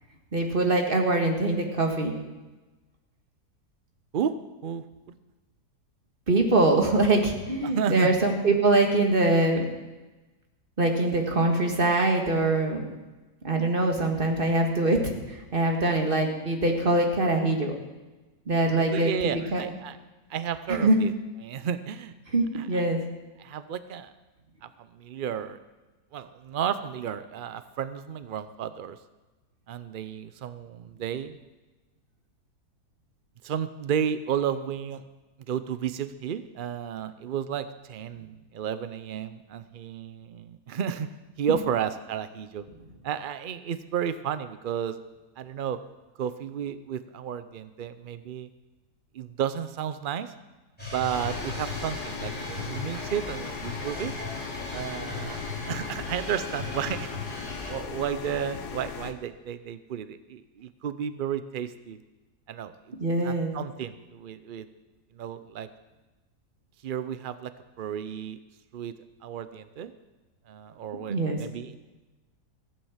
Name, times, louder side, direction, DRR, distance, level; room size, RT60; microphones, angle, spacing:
voice 1, 0.3-2.1 6.3-9.6 10.8-12.9 13.4-15.0 15.3-17.7 18.5-19.1 19.5-19.6 20.7-21.0 22.3-23.0 63.0-63.5 71.1-71.4, right 2 dB, 35° right, 3 dB, 1.9 m, -23 dB
voice 2, 4.6-5.2 7.6-8.1 18.9-20.0 20.3-21.1 21.4-22.1 22.7-22.8 23.4-24.1 24.6-25.6 26.1-29.0 29.7-31.4 33.4-35.0 35.5-41.1 41.4-42.7 43.0-45.0 45.4-45.8 46.2-48.5 49.1-50.3 50.9-54.2 54.7-62.0 62.5-62.7 63.2-64.7 65.2-65.7 66.8-67.5 67.8-68.4 68.7-68.9 69.2-69.9 70.5-71.8, right 8 dB, 85° right, 12 dB, 0.4 m, -32 dB
sound 1, 50.8-57.7, left 2 dB, 5° left, 4.9 m, -37 dB
sound 2, 51.1-59.1, left 7 dB, 80° left, 1.5 m, -38 dB
15.0 x 8.7 x 7.3 m, 1.2 s
omnidirectional pair, 1.7 m